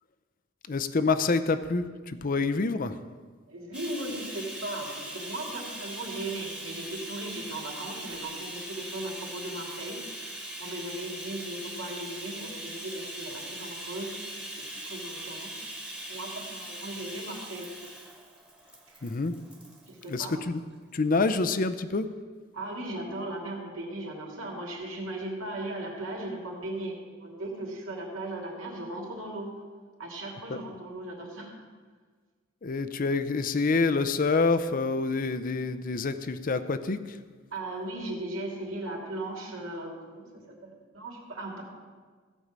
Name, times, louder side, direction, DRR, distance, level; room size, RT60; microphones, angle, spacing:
voice 1, 0.7-3.0 19.0-19.3 20.1-20.6 20.9-22.1 30.5-30.6 32.6-37.0, left 3 dB, 45° left, 11 dB, 0.6 m, -27 dB
voice 2, 3.5-14.2 14.5-15.5 16.1-17.7 19.9-20.3 22.5-29.5 30.0-31.5 37.5-40.3 40.6-41.6, right 1 dB, 80° right, -2 dB, 2.8 m, -37 dB
Bathtub (filling or washing), 3.7-20.4 21.3-21.4 21.8-21.9, right 1 dB, 5° right, 1.4 m, -41 dB
16.0 x 5.4 x 7.4 m, 1.5 s
head